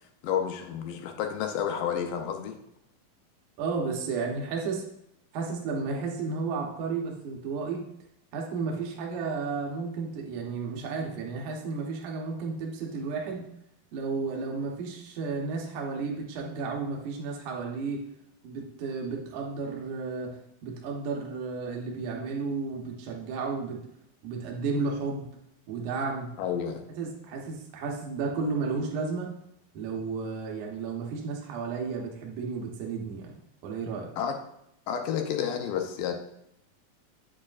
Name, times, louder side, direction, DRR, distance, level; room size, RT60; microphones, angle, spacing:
voice 1, 0.2-2.6 26.4-26.8 34.2-34.3 34.9-36.1, left 8 dB, 80° left, 5 dB, 2.4 m, -30 dB
voice 2, 3.6-4.8 5.3-7.8 8.3-13.4 13.9-18.0 18.4-23.8 24.2-25.3 25.7-26.3 27.0-29.3 29.7-33.3 33.6-34.1, right 4 dB, 70° right, 0 dB, 2.4 m, -33 dB
8.5 x 7.5 x 2.4 m, 0.77 s
omnidirectional pair, 4.0 m